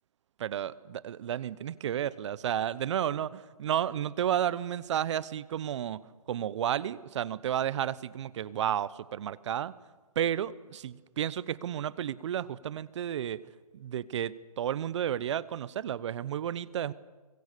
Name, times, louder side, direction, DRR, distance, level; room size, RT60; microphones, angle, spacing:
voice 1, 0.4-9.7 10.2-13.4 13.7-16.9, right 10 dB, 50° right, 19 dB, 0.9 m, -32 dB
25.5 x 23.5 x 6.8 m, 1.3 s
hypercardioid pair, 145°, 20 cm